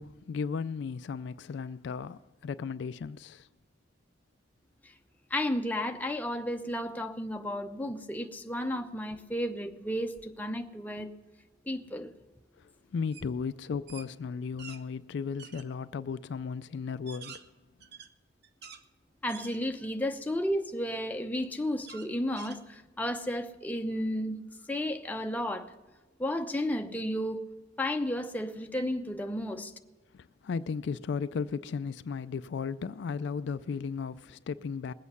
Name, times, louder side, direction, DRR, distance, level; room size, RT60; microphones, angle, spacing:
voice 1, 0.0-3.5 12.6-17.4 30.1-34.9, left 5 dB, 65° left, 0.3 m, -35 dB
voice 2, 5.3-11.1 11.6-12.1 19.2-24.4 24.7-25.7 26.2-27.4 27.8-29.7, left 1 dB, 10° left, 0.7 m, -33 dB
sound 1, 13.1-13.3 13.6-14.8 15.4-15.7 16.3-16.4 16.9-18.8 19.3-20.0 20.5-20.6 21.9-23.1, right 7 dB, 60° right, 0.7 m, -48 dB
20.5 x 8.4 x 5.5 m
head